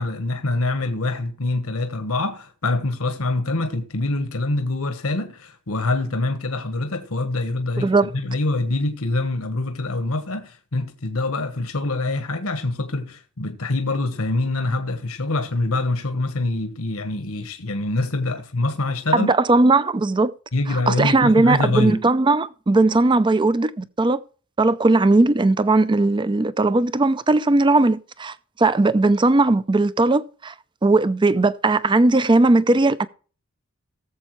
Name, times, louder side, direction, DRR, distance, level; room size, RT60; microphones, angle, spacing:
voice 1, 0.0-19.3 20.5-22.0, left 2 dB, 75° left, 1.2 m, -25 dB
voice 2, 7.8-8.1 19.1-20.3 20.9-24.2 24.6-30.5 30.8-33.1, right 2 dB, 20° right, 0.4 m, -18 dB
19.0 x 7.3 x 3.1 m
head